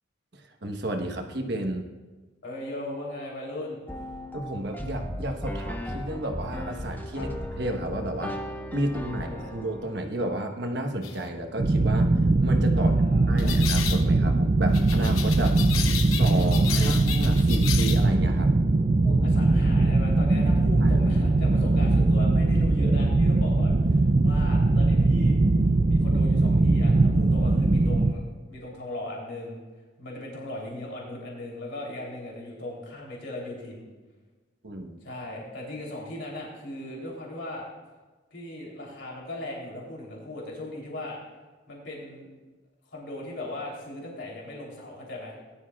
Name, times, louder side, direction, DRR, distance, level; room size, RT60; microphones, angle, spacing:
voice 1, 0.3-1.8 4.3-8.4 8.7-12.1 12.4-12.9 13.3-15.6 16.1-18.5 20.8-20.9 34.6-35.0, right 1 dB, 55° right, 4 dB, 1.2 m, -32 dB
voice 2, 2.4-3.8 7.1-7.3 8.8-9.5 12.7-13.6 16.7-16.9 19.0-25.4 25.9-28.2 28.5-29.6 30.0-33.9 35.0-37.6 38.3-41.2 41.7-42.3 42.9-45.4, left 1 dB, 60° left, -3 dB, 3.4 m, -38 dB
sound 1, 3.9-10.0, left 1 dB, 10° left, 0.7 m, -36 dB
sound 2, 11.0-11.2 13.4-14.0 14.7-18.1, left 8 dB, 85° left, 0.9 m, -33 dB
sound 3, 11.6-28.1, right 2 dB, 35° right, 0.4 m, -21 dB
19.0 x 12.0 x 2.4 m, 1.3 s
head